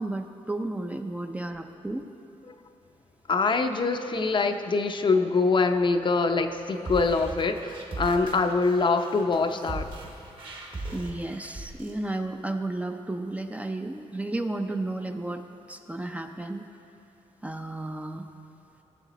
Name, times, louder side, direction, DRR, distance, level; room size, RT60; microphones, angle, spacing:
voice 1, 0.0-2.1 10.9-16.7 17.4-18.2, right 2 dB, 10° right, 5 dB, 0.5 m, -33 dB
voice 2, 3.3-9.9, left 4 dB, 45° left, 7 dB, 0.6 m, -24 dB
sound 1, 6.7-11.9, right 2 dB, 45° right, 1.8 m, -39 dB
16.5 x 7.3 x 4.0 m, 2.7 s
cardioid pair, 100°, 12 cm